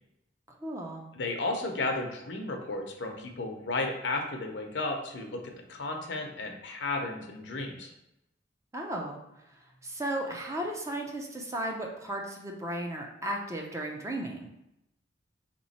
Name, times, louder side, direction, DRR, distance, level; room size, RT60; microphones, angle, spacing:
voice 1, 0.6-1.1 8.7-9.2 9.5-14.5, right 1 dB, 15° right, 1 dB, 0.5 m, -35 dB
voice 2, 1.1-7.9, left 2 dB, 70° left, 3 dB, 0.7 m, -33 dB
3.6 x 3.0 x 4.2 m, 0.85 s
head